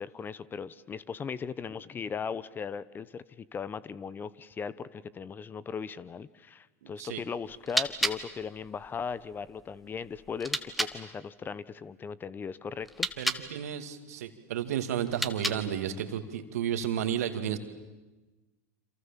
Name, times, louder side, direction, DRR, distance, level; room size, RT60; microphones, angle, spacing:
voice 1, 0.0-13.1, left 6 dB, 25° left, 19 dB, 0.9 m, -38 dB
voice 2, 6.8-7.2 13.2-17.6, right 9 dB, 75° right, 9 dB, 2.4 m, -32 dB
sound 1, 7.4-11.0 12.8-13.5 15.0-15.9, right 1 dB, ahead, 1.8 m, -34 dB
28.5 x 27.0 x 7.5 m, 1.2 s
hypercardioid pair, 95°, 8 cm